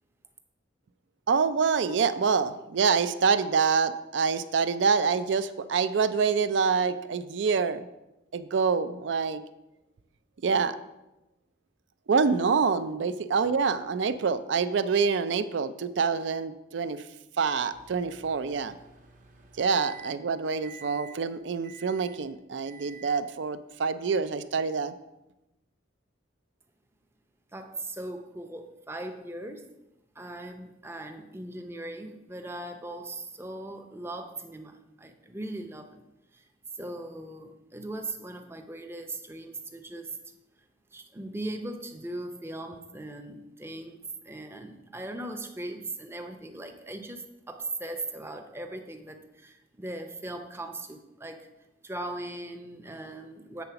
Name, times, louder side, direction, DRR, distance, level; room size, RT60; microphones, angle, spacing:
voice 1, 1.3-7.9 8.3-9.4 10.4-10.8 12.1-17.0 17.4-18.7 19.6-24.9, right 5 dB, 65° right, 13 dB, 0.4 m, -26 dB
Microwave oven, 17.7-20.3 20.6-21.2 21.6-22.2 22.6-23.3, right 6 dB, 45° right, 0.9 m, -49 dB
voice 2, 27.5-29.8 30.1-36.0 36.3-36.5 36.7-40.2 40.6-40.7 40.9-51.5 51.8-53.6, right 2 dB, 15° right, 6 dB, 0.6 m, -39 dB
8.3 x 3.9 x 5.7 m, 0.96 s
head